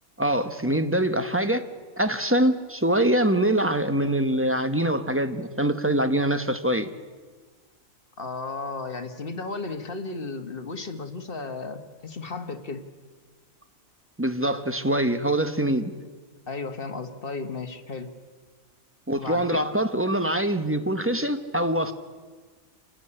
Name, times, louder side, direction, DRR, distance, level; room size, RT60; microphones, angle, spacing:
voice 1, 0.2-1.7 2.0-6.9 14.2-15.9 19.1-21.9, right 1 dB, 10° right, 0.9 m, -24 dB
voice 2, 8.2-12.8 16.5-18.1 19.1-19.6, left 3 dB, 45° left, 1.5 m, -34 dB
28.5 x 12.5 x 9.9 m
omnidirectional pair, 1.4 m